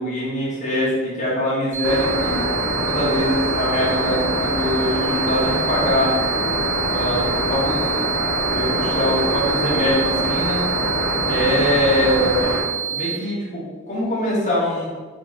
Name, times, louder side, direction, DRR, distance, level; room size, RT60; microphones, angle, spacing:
voice 1, 0.0-2.5 2.7-6.1 6.9-7.9 8.5-10.6 11.2-12.6 12.9-14.9, left 1 dB, 35° left, -7 dB, 1.2 m, -23 dB
sound 1, 1.7-13.2, right 9 dB, 15° right, 0.6 m, -27 dB
sound 2, 1.8-12.6, left 1 dB, 80° left, 1.3 m, -24 dB
3.9 x 2.5 x 3.5 m, 1.4 s
head